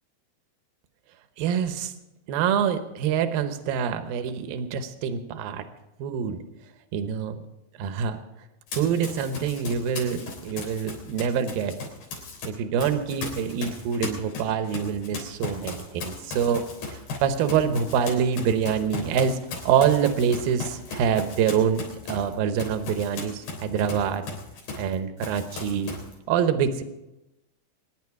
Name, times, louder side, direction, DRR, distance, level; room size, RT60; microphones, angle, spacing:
voice 1, 1.4-1.9 2.3-5.7 6.0-6.4 6.9-7.4 7.8-8.2 8.7-11.8 12.5-19.4 19.7-24.3 24.8-25.9 26.3-26.8, right 7 dB, 75° right, 9 dB, 2.8 m, -25 dB
Run, 8.7-12.5 12.8-24.9 25.2-26.1, left 4 dB, 80° left, 5.3 m, -37 dB
23.5 x 10.5 x 4.7 m, 0.95 s
omnidirectional pair, 4.3 m